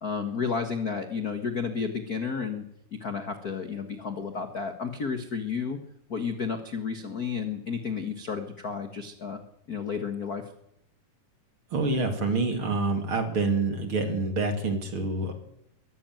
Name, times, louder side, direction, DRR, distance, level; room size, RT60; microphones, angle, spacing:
voice 1, 0.0-2.6 3.0-5.8 6.1-9.4 9.7-10.4, left 5 dB, 45° left, 7 dB, 1.2 m, -32 dB
voice 2, 11.7-15.3, right 3 dB, 40° right, 6 dB, 3.0 m, -27 dB
23.0 x 12.5 x 9.2 m, 0.77 s
omnidirectional pair, 3.8 m